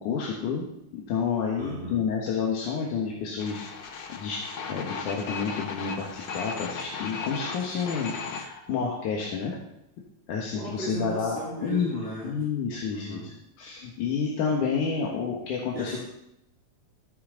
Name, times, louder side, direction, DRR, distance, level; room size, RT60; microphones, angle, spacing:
voice 1, 0.0-0.6 0.9-3.7 4.1-4.4 4.7-9.6 10.3-13.3 13.6-16.0, left 6 dB, 85° left, -2 dB, 3.0 m, -29 dB
voice 2, 1.6-2.0 10.5-12.3 12.8-13.3 15.7-16.0, right 2 dB, 20° right, -8 dB, 3.9 m, -36 dB
sound 1, 3.4-8.5, left 5 dB, 65° left, 1.1 m, -36 dB
14.0 x 9.8 x 4.0 m, 0.81 s
omnidirectional pair, 3.5 m